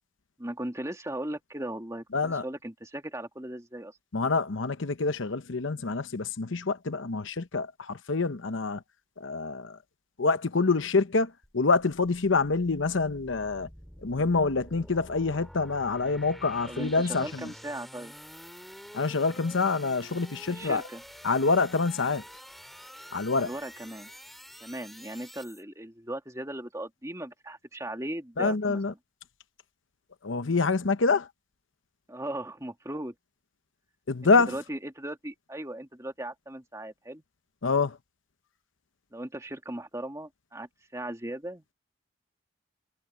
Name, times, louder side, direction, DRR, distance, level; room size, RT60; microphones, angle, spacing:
voice 1, 0.4-4.0 16.7-18.1 20.5-21.0 23.4-24.1 24.6-28.8 32.1-33.1 34.5-37.2 39.1-41.7, right 1 dB, 15° right, 2.4 m, -38 dB
voice 2, 2.1-2.4 4.1-8.8 9.2-9.8 10.2-13.7 14.0-17.5 18.9-20.8 21.2-22.2 23.1-23.5 28.4-28.9 30.2-31.3 34.1-34.6 37.6-38.0, left 4 dB, 75° left, 0.9 m, -26 dB
sound 1, 11.4-25.6, equal, ahead, 3.1 m, -48 dB
head